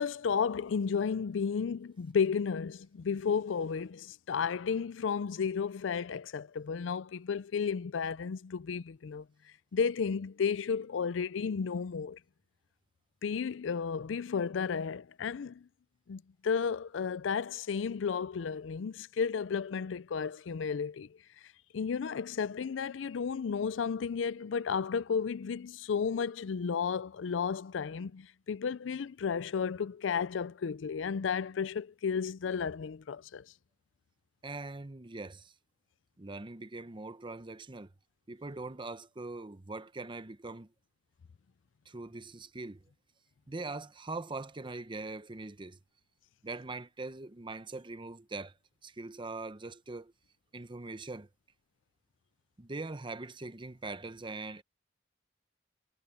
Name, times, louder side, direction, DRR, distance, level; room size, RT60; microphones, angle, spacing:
voice 1, 0.0-9.3 9.7-12.2 13.2-15.7 16.1-21.1 21.7-33.5, left 6 dB, 85° left, 0.4 m, -33 dB
voice 2, 34.4-35.5 36.2-37.9 38.3-40.7 41.9-42.8 43.5-45.8 46.4-48.5 48.8-50.1 50.5-51.3 52.6-54.6, right 3 dB, 25° right, 0.8 m, -42 dB
head